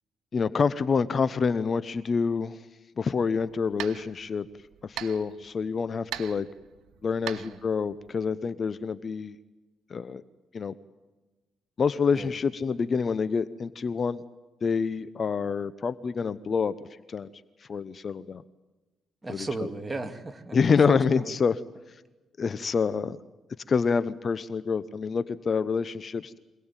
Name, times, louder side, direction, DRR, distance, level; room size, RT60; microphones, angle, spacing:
voice 1, 0.3-2.6 3.0-4.5 4.8-6.5 7.0-9.4 9.9-10.2 10.5-10.7 11.8-14.2 14.6-16.8 17.1-17.3 17.7-18.4 19.3-19.5 20.5-21.6 22.4-23.2 23.7-26.4, left 5 dB, 45° left, 16 dB, 0.9 m, -27 dB
sound 1, 3.1-8.3, right 12 dB, 80° right, 1.1 m, -42 dB
voice 2, 7.2-7.6 12.1-12.3 19.2-21.3, right 3 dB, 20° right, 7 dB, 2.5 m, -36 dB
26.0 x 19.0 x 9.1 m, 1.2 s
cardioid pair, 90°, 0 cm